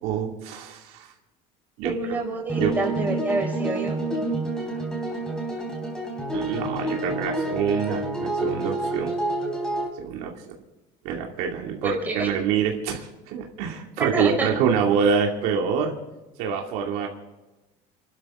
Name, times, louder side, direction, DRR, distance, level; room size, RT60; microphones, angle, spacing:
voice 1, 0.0-1.1 1.8-2.2 2.6-2.7 6.3-9.1 10.0-10.4 11.0-15.9 16.4-17.1, right 7 dB, 70° right, 1 dB, 2.5 m, -26 dB
voice 2, 1.8-4.4 11.8-12.3 14.0-14.5, right 2 dB, 10° right, -1 dB, 4.5 m, -28 dB
sound 1, 2.5-9.9, right 2 dB, 5° left, 3.2 m, -28 dB
29.5 x 12.5 x 3.7 m, 1.1 s
cardioid pair, 180°, 16 cm